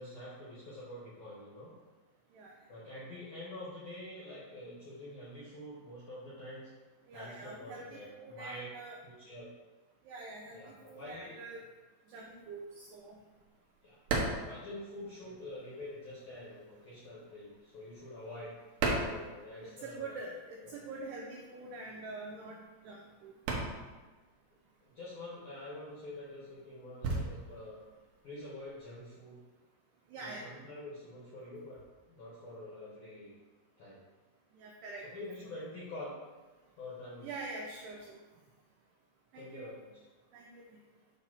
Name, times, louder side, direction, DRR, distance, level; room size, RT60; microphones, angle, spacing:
voice 1, 0.0-1.7 2.7-6.7 7.1-8.7 9.0-9.5 10.5-11.4 13.8-18.6 18.9-20.2 20.6-20.8 24.8-27.8 28.2-29.4 30.2-31.8 32.1-33.3 33.8-34.1 35.0-36.2 36.8-37.4 39.3-39.9, left 1 dB, 75° left, -7 dB, 1.8 m, -46 dB
voice 2, 7.1-9.0 10.1-11.6 12.1-13.2 19.6-23.3 30.1-30.5 34.5-35.1 37.2-38.2 39.3-39.7 40.3-40.8, right 3 dB, 90° right, -1 dB, 2.3 m, -45 dB
sound 1, 12.3-15.6 15.9-20.0 20.3-29.0, right 3 dB, 75° right, 2.3 m, -38 dB
8.2 x 2.8 x 6.0 m, 1.3 s
omnidirectional pair, 5.5 m